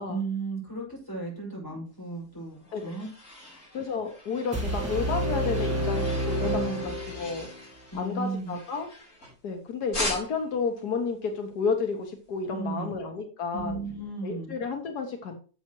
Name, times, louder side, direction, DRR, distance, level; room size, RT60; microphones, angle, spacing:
voice 1, 0.1-3.1 3.4-3.6 6.4-6.9 7.9-8.6 12.5-12.9 13.5-14.5, right 3 dB, 10° left, -4 dB, 5.7 m, -35 dB
sound 1, 2.2-9.5 9.9-10.6, left 1 dB, 55° left, 6.4 m, -40 dB
voice 2, 3.7-6.8 7.2-7.5 8.0-8.9 9.4-13.8 14.2-15.4, left 5 dB, 80° left, 5 dB, 1.8 m, -31 dB
sound 2, 4.5-7.5, equal, 10° right, 1.5 m, -29 dB
11.5 x 7.3 x 3.1 m, 0.37 s
omnidirectional pair, 1.7 m